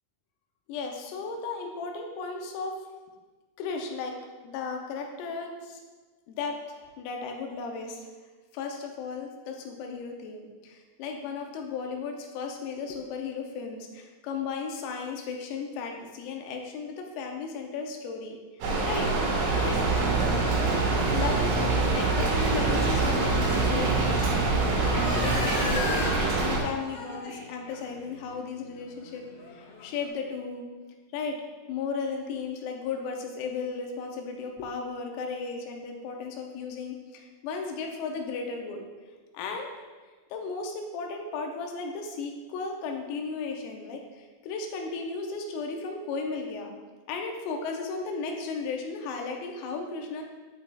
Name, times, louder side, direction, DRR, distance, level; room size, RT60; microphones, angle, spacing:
voice 1, 0.7-2.8 3.6-4.2 4.4-5.8 6.3-8.1 8.5-18.4 18.8-19.1 19.6-19.9 20.9-23.9 24.8-26.0 26.4-30.7 31.1-31.4 31.7-38.8 39.3-39.7 40.3-46.7 47.1-50.2, left 4 dB, 90° left, 2 dB, 3.5 m, -35 dB
Rain, 18.6-26.6, right 2 dB, 65° right, 3.3 m, -26 dB
sound 1, 19.5-25.4, right 5 dB, 85° right, 3.3 m, -29 dB
sound 2, 24.6-30.1, left 3 dB, 70° left, 2.5 m, -38 dB
8.4 x 7.5 x 2.4 m, 1.3 s
omnidirectional pair, 5.9 m